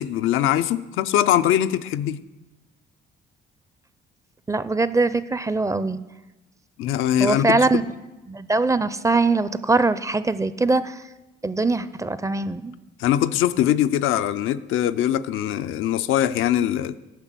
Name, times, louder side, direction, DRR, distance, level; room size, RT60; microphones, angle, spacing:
voice 1, 0.0-2.2 6.8-7.7 13.0-16.9, left 11 dB, 85° left, 11 dB, 0.5 m, -22 dB
voice 2, 4.5-6.0 7.2-7.8 8.3-11.0 11.4-12.7, right 3 dB, 15° right, 14 dB, 0.4 m, -22 dB
10.5 x 6.1 x 7.5 m, 1.1 s
cardioid pair, 90°, 20 cm